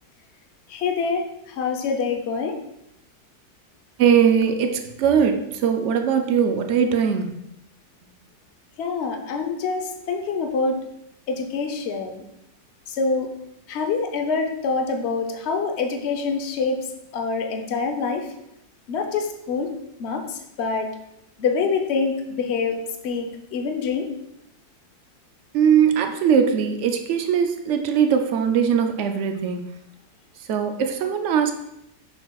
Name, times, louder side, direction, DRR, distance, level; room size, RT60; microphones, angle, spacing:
voice 1, 0.7-1.2 1.6-2.6 8.8-10.8 11.3-12.2 12.9-13.3 13.7-16.8 17.1-18.3 18.9-19.7 20.0-20.2 20.6-20.9 21.4-22.8 23.0-24.1, left 4 dB, 55° left, 4 dB, 0.8 m, -25 dB
voice 2, 4.0-7.4 25.5-29.6 30.5-31.5, right 7 dB, 85° right, 5 dB, 0.6 m, -20 dB
6.7 x 6.2 x 2.3 m, 0.83 s
omnidirectional pair, 1.8 m